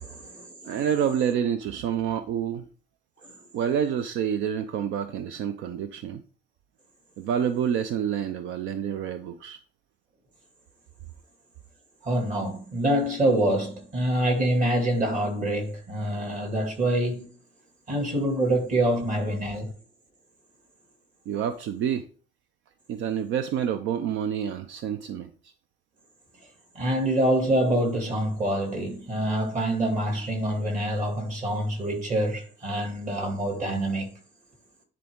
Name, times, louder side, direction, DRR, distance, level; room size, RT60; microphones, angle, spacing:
voice 1, 0.0-0.7 3.2-3.3 12.0-17.3 17.9-19.7 26.7-34.1, right 1 dB, 40° right, 2.3 m, -26 dB
voice 2, 0.6-2.7 3.5-6.2 7.2-9.6 21.3-22.1 22.9-25.5, right 8 dB, 75° right, 0.6 m, -28 dB
10.5 x 4.1 x 3.6 m
cardioid pair, 145°, 20 cm